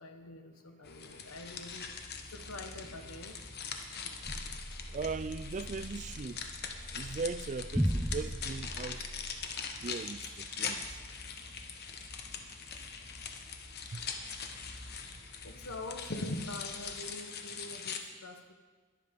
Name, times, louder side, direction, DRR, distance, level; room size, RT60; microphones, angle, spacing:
voice 1, 0.0-3.4 15.4-18.5, left 2 dB, 75° left, 1.2 m, -46 dB
sound 1, 0.8-18.0, left 5 dB, 45° left, 1.1 m, -42 dB
sound 2, 0.8-17.0, equal, 20° left, 3.0 m, -54 dB
Basspad (Confined), 4.2-9.3, equal, ahead, 0.7 m, -37 dB
voice 2, 4.9-6.4 6.9-9.1 9.8-10.8 13.9-14.0, right 4 dB, 35° right, 0.4 m, -39 dB
21.5 x 7.7 x 5.2 m
head